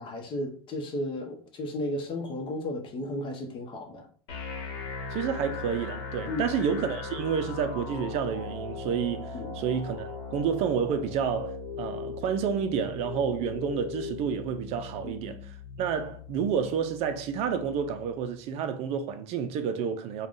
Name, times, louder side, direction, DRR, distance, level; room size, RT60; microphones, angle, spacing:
voice 1, 0.0-4.1 6.3-6.5 9.3-9.6 15.0-15.1, left 1 dB, 40° left, 0.8 m, -34 dB
sound 1, 4.3-18.3, left 4 dB, 80° left, 1.0 m, -39 dB
voice 2, 5.1-20.3, right 7 dB, 50° right, 0.4 m, -30 dB
3.5 x 2.2 x 2.5 m
supercardioid pair, 115°, 13 cm